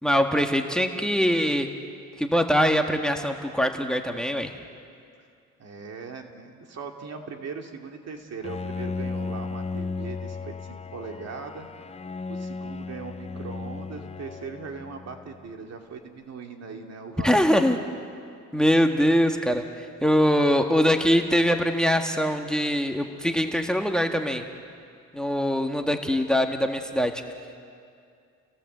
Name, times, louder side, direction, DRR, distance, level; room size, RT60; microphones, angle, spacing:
voice 1, 0.0-1.7 2.2-4.5 17.2-17.8 18.5-24.4 25.1-27.2, equal, ahead, 4 dB, 1.6 m, -23 dB
voice 2, 5.6-11.7 12.3-17.5, right 5 dB, 55° right, 3 dB, 2.6 m, -39 dB
Bowed string instrument, 8.4-15.5, left 4 dB, 20° left, 0.6 m, -35 dB
29.0 x 17.5 x 8.0 m, 2.3 s
cardioid pair, 90°, 30 cm